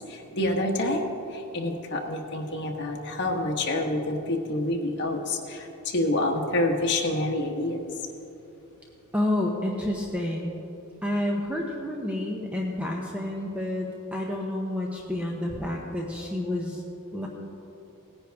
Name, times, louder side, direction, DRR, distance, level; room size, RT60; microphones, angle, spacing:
voice 1, 0.1-1.0 1.3-7.9, left 1 dB, 55° left, 1 dB, 1.3 m, -27 dB
voice 2, 9.1-10.6 11.0-16.8 17.1-17.3, left 1 dB, 5° right, -1 dB, 0.8 m, -29 dB
18.0 x 9.9 x 3.5 m, 2.9 s
head